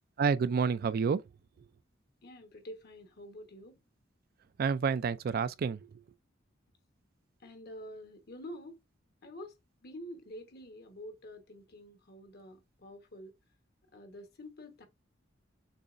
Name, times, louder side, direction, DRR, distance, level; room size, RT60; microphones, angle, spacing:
voice 1, 0.2-1.2 4.6-5.8, right 5 dB, 50° right, 0.3 m, -29 dB
voice 2, 2.2-3.8 7.4-8.8 9.2-9.6 9.8-13.3 13.9-14.9, equal, 55° left, 1.1 m, -47 dB
6.6 x 2.9 x 2.5 m
head